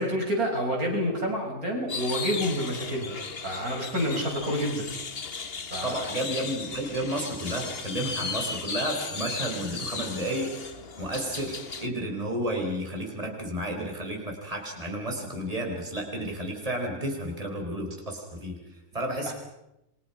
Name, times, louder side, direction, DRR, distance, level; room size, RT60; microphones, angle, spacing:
voice 1, 0.0-3.2 3.4-4.9 5.7-6.1 19.3-19.4, equal, 80° right, 0 dB, 7.3 m, -28 dB
sound 1, 1.9-11.9, left 5 dB, 45° left, 1.5 m, -36 dB
voice 2, 5.8-10.7 11.0-19.3, right 1 dB, 25° right, 2 dB, 4.7 m, -32 dB
29.0 x 24.0 x 5.8 m, 0.88 s
omnidirectional pair, 1.5 m